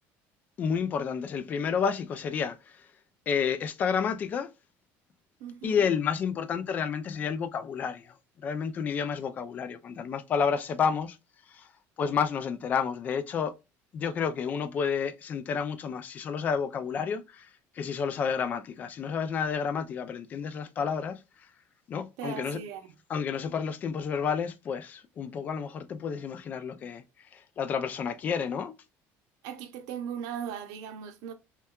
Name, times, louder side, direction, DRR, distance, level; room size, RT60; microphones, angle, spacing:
voice 1, 0.6-2.6 3.3-4.5 5.6-8.1 8.4-11.2 11.5-11.7 12.0-13.5 13.9-17.5 17.8-21.2 21.9-22.6 23.1-27.0 27.3-28.7, left 6 dB, 30° left, 0.3 m, -30 dB
voice 2, 5.4-5.9 22.2-22.9 29.4-31.3, right 8 dB, 80° right, 0.7 m, -38 dB
5.5 x 2.3 x 2.3 m
cardioid pair, 180°, 6 cm